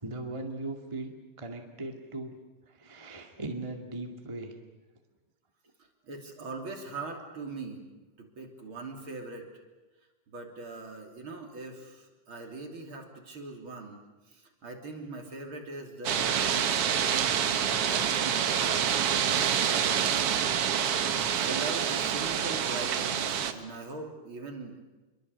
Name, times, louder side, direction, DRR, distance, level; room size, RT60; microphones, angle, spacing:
voice 1, 0.0-2.3 2.7-4.5, right 2 dB, 15° right, 2 dB, 1.2 m, -38 dB
voice 2, 6.1-7.9 8.2-9.5 10.3-14.0 14.3-17.4 17.8-18.6 19.3-20.3 21.3-24.8, right 3 dB, 35° right, 2 dB, 3.4 m, -41 dB
sound 1, 16.0-23.5, right 8 dB, 70° right, 1.4 m, -27 dB
26.5 x 23.0 x 8.0 m, 1.2 s
omnidirectional pair, 4.4 m